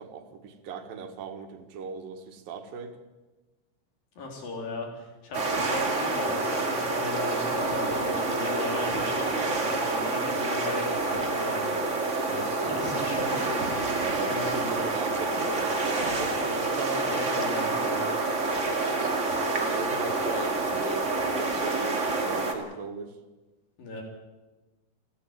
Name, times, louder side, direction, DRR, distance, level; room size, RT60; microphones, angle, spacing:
voice 1, 0.0-2.9 12.6-12.8 13.9-17.2 18.7-19.1 19.5-23.1, right 6 dB, 85° right, 6 dB, 3.4 m, -38 dB
voice 2, 4.2-14.0 14.2-14.9 16.9-18.1 23.8-24.0, left 3 dB, 85° left, 1 dB, 5.7 m, -37 dB
sound 1, 5.3-22.5, right 3 dB, 25° right, 2.1 m, -28 dB
29.5 x 11.5 x 9.1 m, 1.2 s
omnidirectional pair, 3.9 m